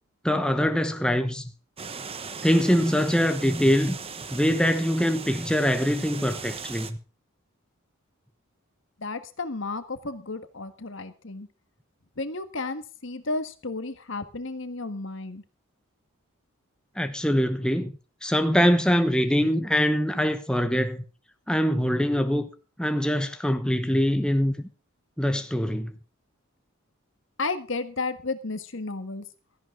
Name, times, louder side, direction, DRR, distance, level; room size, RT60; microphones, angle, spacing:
voice 1, 0.2-1.5 2.4-4.0 4.3-7.0 17.0-17.9 18.2-21.0 21.5-22.5 22.8-24.6 25.2-25.9, equal, 5° left, 1.0 m, -23 dB
sound 1, 1.8-6.9, right 5 dB, 25° right, 1.0 m, -38 dB
voice 2, 9.0-11.5 12.2-15.4 27.4-29.2, left 3 dB, 65° left, 1.6 m, -33 dB
16.5 x 14.0 x 3.8 m
head